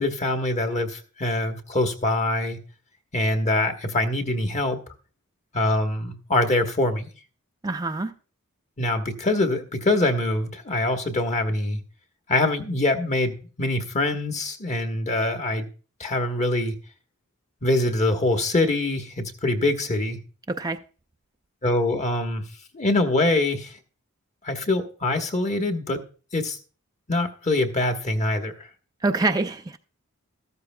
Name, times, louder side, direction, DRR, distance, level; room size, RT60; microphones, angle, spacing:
voice 1, 0.0-2.6 3.1-4.8 5.5-7.1 8.8-11.8 12.3-15.7 16.0-16.7 17.6-20.2 21.6-22.4 22.7-23.7 24.4-26.0 26.3-26.6 27.1-28.5, left 2 dB, 35° left, 1.2 m, -24 dB
voice 2, 7.6-8.1 20.5-20.8 29.0-29.8, right 3 dB, 15° right, 0.4 m, -25 dB
13.5 x 12.5 x 2.3 m
head